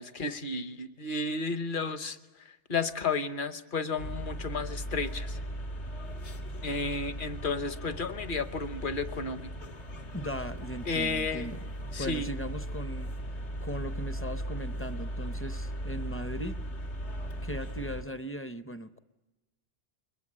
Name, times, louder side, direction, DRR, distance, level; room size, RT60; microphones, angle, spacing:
voice 1, 0.0-2.2 2.7-5.4 6.6-9.5 10.8-11.5 11.9-12.3, left 3 dB, 50° left, 11 dB, 1.1 m, -32 dB
sound 1, 4.0-18.0, right 1 dB, 75° left, 1.9 m, -38 dB
voice 2, 10.1-11.6 12.0-13.1 13.6-16.6 17.4-19.0, equal, 15° left, 10 dB, 0.6 m, -38 dB
22.5 x 21.5 x 8.7 m, 1.1 s
omnidirectional pair, 1.2 m